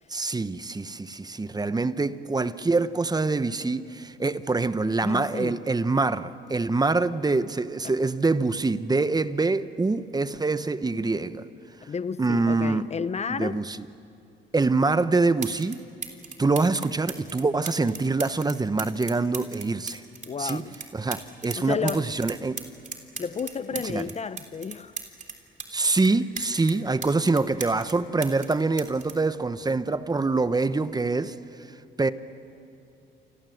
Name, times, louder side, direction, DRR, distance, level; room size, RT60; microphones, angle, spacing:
voice 1, 0.1-11.5 12.2-12.9 13.3-13.9 14.5-15.8 16.4-20.0 20.4-20.6 20.9-22.6 23.8-24.1 25.7-31.3 32.0-32.1, right 3 dB, 20° right, 0.9 m, -25 dB
voice 2, 5.0-5.6 11.9-13.6 20.3-20.8 21.5-22.1 23.2-25.0, left 6 dB, 35° left, 0.6 m, -32 dB
sound 1, 15.4-15.8 16.0-21.6 21.9-25.7 26.0-28.0 28.2-30.1 31.0-31.2, right 5 dB, 40° right, 3.3 m, -37 dB
29.0 x 26.0 x 7.9 m
cardioid pair, 90°, 20 cm